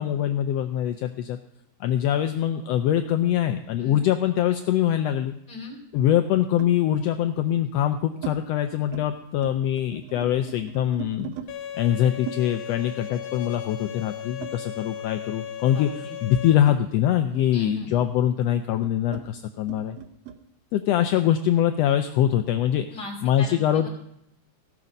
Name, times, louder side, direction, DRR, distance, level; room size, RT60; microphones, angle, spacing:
voice 1, 0.0-1.4 1.8-5.3 5.9-11.3 11.8-20.0 20.7-22.9 23.2-23.9, left 11 dB, 85° left, 7 dB, 1.4 m, -23 dB
sound 1, 3.7-5.3 6.6-6.8 7.6-8.4 8.7-9.1 9.3-11.5 12.3-15.1 15.4-20.4, right 10 dB, 70° right, 1.6 m, -42 dB
voice 2, 5.5-5.8 15.7-16.2 17.5-17.9 22.9-23.9, left 1 dB, 35° left, 0 dB, 2.9 m, -38 dB
Bowed string instrument, 11.5-16.5, left 10 dB, 70° left, 1.6 m, -36 dB
16.5 x 6.1 x 5.3 m, 0.77 s
omnidirectional pair, 3.4 m